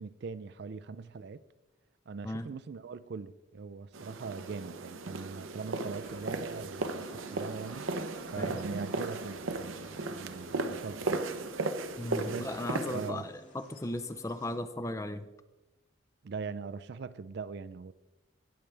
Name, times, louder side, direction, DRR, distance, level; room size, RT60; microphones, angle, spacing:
voice 1, 0.0-1.4 2.1-11.2 12.3-12.6 12.9-13.2 16.2-17.9, right 5 dB, 55° right, 0.4 m, -41 dB
sound 1, 3.9-13.1, right 3 dB, 85° right, 0.7 m, -36 dB
sound 2, 5.6-7.1 7.5-12.6, left 1 dB, 90° left, 2.2 m, -63 dB
sound 3, 6.0-14.6, left 1 dB, 70° left, 2.1 m, -58 dB
voice 2, 12.0-15.3, left 1 dB, 15° left, 0.5 m, -36 dB
17.5 x 6.8 x 3.3 m
head